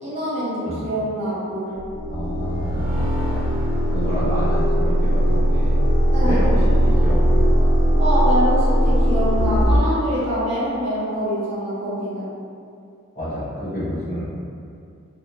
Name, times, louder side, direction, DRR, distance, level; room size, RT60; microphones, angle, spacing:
voice 1, 0.0-1.7 6.1-6.4 8.0-12.3, equal, 30° right, -10 dB, 0.6 m, -24 dB
sound 1, 1.8-9.8, equal, 65° left, 1.3 m, -19 dB
voice 2, 2.1-5.8 6.2-7.7 13.1-14.3, equal, 45° left, -12 dB, 0.9 m, -29 dB
2.3 x 2.2 x 2.7 m, 2.4 s
head